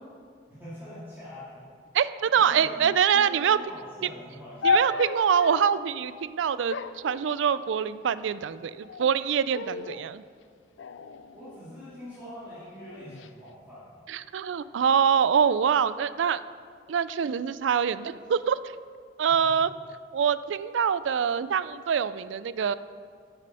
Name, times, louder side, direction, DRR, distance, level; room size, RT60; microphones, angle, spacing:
voice 1, 0.5-1.6 2.3-4.8 11.3-13.9 19.3-19.7, left 1 dB, 10° right, -13 dB, 2.8 m, -44 dB
voice 2, 1.9-3.6 4.6-6.7 7.0-10.2 14.1-16.4 16.9-18.6 19.2-19.7 20.1-22.7, right 7 dB, 75° right, 16 dB, 0.4 m, -24 dB
sound 1, 4.6-5.9 6.7-7.9 8.7-9.2 9.5-10.1 10.8-12.1 12.8-13.3, left 3 dB, 75° left, 0.4 m, -32 dB
9.7 x 8.4 x 5.4 m, 2.1 s
head